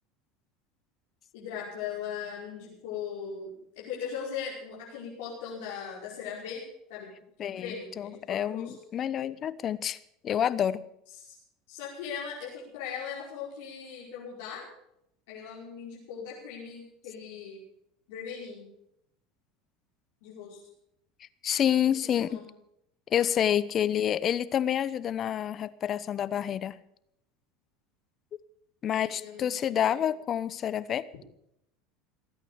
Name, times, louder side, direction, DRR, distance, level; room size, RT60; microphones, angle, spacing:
voice 1, 1.3-6.6 6.9-7.1 7.4-8.7 11.1-11.4 11.7-14.7 15.3-17.6 18.1-18.7 20.2-20.6 22.2-22.5 28.9-30.0, left 7 dB, 75° left, -6 dB, 5.3 m, -39 dB
voice 2, 7.4-10.0 10.2-10.8 21.4-22.4 23.1-26.8 28.8-31.1, left 9 dB, 40° left, 17 dB, 0.9 m, -28 dB
20.0 x 9.1 x 6.8 m, 0.76 s
hypercardioid pair, 95°, 0 cm